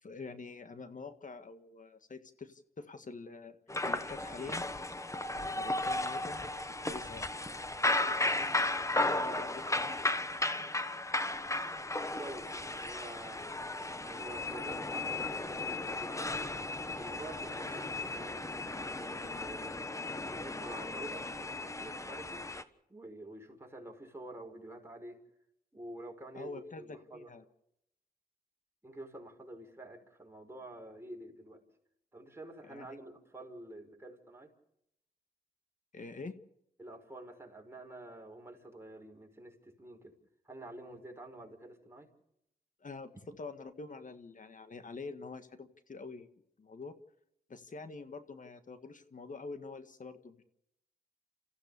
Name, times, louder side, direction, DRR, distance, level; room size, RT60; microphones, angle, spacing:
voice 1, 0.0-3.5 3.8-4.6 5.3-7.3 8.9-10.0 26.3-27.4 32.6-32.9 35.9-36.3 42.8-46.3 46.6-46.9 47.5-50.4, left 4 dB, 50° left, 9 dB, 1.7 m, -46 dB
sound 1, 3.7-22.6, left 2 dB, 20° left, 1.3 m, -35 dB
voice 2, 9.0-9.4 12.2-13.5 14.0-16.5 16.9-19.7 20.2-22.5 22.9-25.2 25.7-27.3 28.8-31.6 32.1-34.5 36.8-40.2 40.5-42.1, right 2 dB, 15° right, 2 dB, 5.4 m, -48 dB
28.0 x 15.0 x 6.9 m, 0.78 s
cardioid pair, 65°, 16 cm